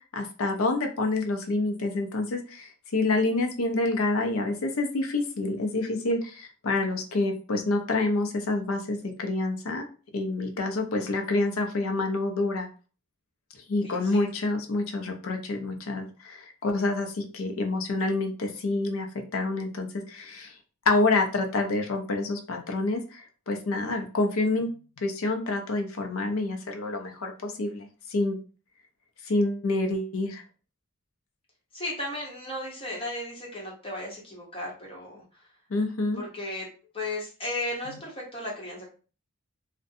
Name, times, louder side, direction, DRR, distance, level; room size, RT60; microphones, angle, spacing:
voice 1, 0.0-9.8 10.1-12.7 13.5-19.1 19.3-20.6 20.9-28.4 29.2-30.4 35.7-36.2 37.9-38.0, left 2 dB, 80° left, 4 dB, 0.5 m, -28 dB
voice 2, 13.8-14.3 31.7-35.2 36.1-36.7 36.9-38.9, left 1 dB, 25° left, -4 dB, 1.0 m, -35 dB
2.5 x 2.2 x 2.5 m, 0.36 s
head